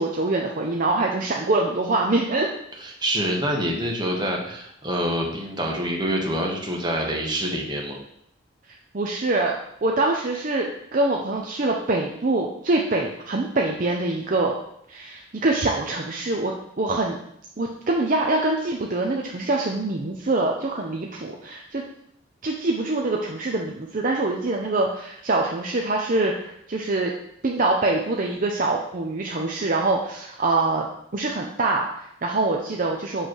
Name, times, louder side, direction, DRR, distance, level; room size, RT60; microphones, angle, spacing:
voice 1, 0.0-2.5 8.9-14.6 14.9-16.5 16.8-17.2 17.6-21.8 22.4-27.1 27.4-30.9 31.1-33.3, right 2 dB, 45° right, 0 dB, 0.6 m, -24 dB
voice 2, 2.8-8.0, equal, 20° right, -1 dB, 1.3 m, -26 dB
7.7 x 3.4 x 6.3 m, 0.73 s
head